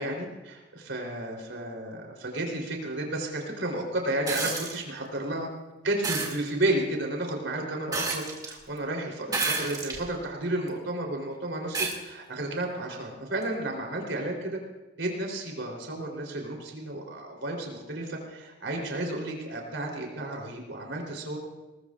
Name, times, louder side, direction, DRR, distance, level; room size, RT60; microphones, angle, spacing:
voice 1, 0.0-5.5 5.8-14.6 15.0-21.4, right 1 dB, 80° right, 0 dB, 3.6 m, -32 dB
sound 1, 4.3-4.8 6.0-6.4 7.9-8.5 9.3-10.0 10.7-10.8 11.7-12.0 13.4-13.5, right 3 dB, 20° right, 2.3 m, -29 dB
21.5 x 19.5 x 2.5 m, 1.1 s
head